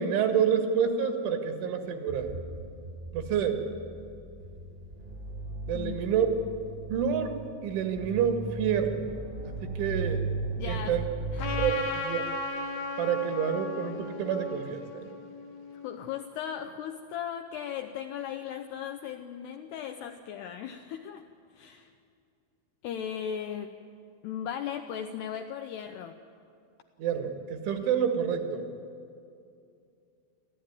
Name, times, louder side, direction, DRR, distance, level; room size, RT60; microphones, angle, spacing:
voice 1, 0.0-2.3 3.1-3.6 5.7-6.3 6.9-7.4 7.6-9.0 9.4-10.2 10.7-11.0 11.5-12.2 13.0-15.1 27.0-28.7, right 8 dB, 75° right, 5 dB, 4.1 m, -28 dB
sound 1, 2.1-11.7, right 2 dB, 20° right, 1.3 m, -37 dB
voice 2, 10.6-11.0 11.3-11.8 15.8-21.3 21.5-21.9 22.8-23.8 24.2-26.2, left 9 dB, 80° left, 6 dB, 2.4 m, -37 dB
Trumpet, 11.4-16.1, left 4 dB, 60° left, 3.1 m, -36 dB
27.5 x 14.0 x 9.6 m, 2.5 s
omnidirectional pair, 5.6 m